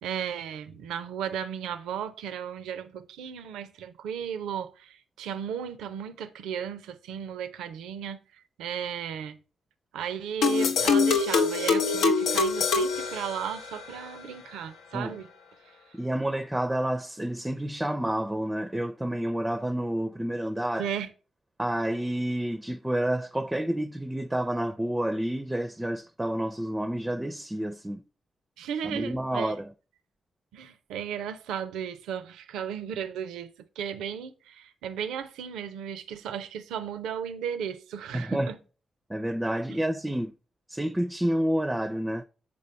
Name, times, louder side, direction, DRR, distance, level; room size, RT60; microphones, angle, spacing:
voice 1, 0.0-9.4 9.9-15.3 15.7-15.8 20.8-21.1 28.6-29.6 30.5-38.6, right 8 dB, 85° right, 0.4 m, -35 dB
sound 1, 10.4-13.9, left 4 dB, 80° left, 0.5 m, -24 dB
voice 2, 15.9-20.9 21.6-28.0 28.8-29.7 38.1-38.5 39.1-40.3 40.7-42.2, right 1 dB, 15° right, 0.4 m, -29 dB
6.8 x 5.0 x 3.1 m
supercardioid pair, 45°, 0 cm